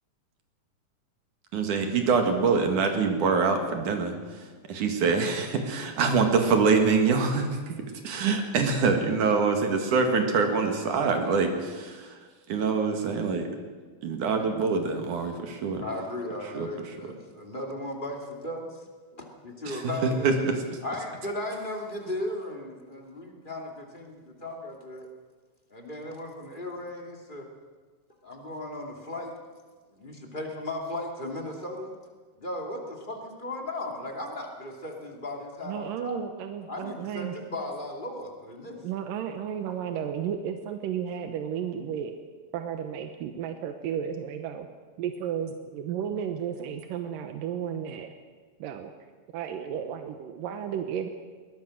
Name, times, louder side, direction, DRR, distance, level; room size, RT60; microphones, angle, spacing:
voice 1, 1.5-4.1 4.7-7.7 8.0-12.0 12.5-13.5 14.0-15.8 16.6-16.7 19.7-19.8 20.2-20.3, right 4 dB, 70° right, 5 dB, 3.4 m, -24 dB
voice 2, 15.8-18.8 19.2-20.4 20.8-25.1 25.7-27.4 28.2-29.3 29.9-31.9 32.4-36.2 36.7-38.8, left 1 dB, 15° left, 1 dB, 2.4 m, -36 dB
voice 3, 35.6-37.4 38.8-42.1 42.5-44.7 45.0-48.1 48.6-48.9 49.3-51.1, right 8 dB, 90° right, 7 dB, 2.7 m, -33 dB
22.0 x 19.0 x 6.5 m, 1.5 s
omnidirectional pair, 3.8 m